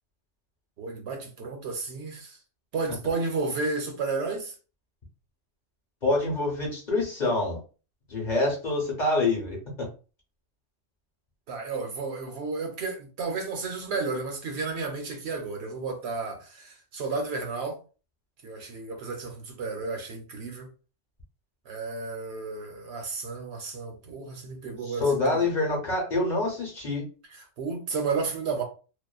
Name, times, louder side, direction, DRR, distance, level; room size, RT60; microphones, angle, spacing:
voice 1, 0.8-2.4 2.7-4.6 11.5-17.8 18.4-20.7 21.7-25.5 27.6-28.6, right 4 dB, 70° right, 0.8 m, -32 dB
voice 2, 6.0-7.6 8.1-9.9 24.8-27.0, left 2 dB, 45° left, 0.9 m, -26 dB
2.5 x 2.3 x 2.3 m
omnidirectional pair, 1.2 m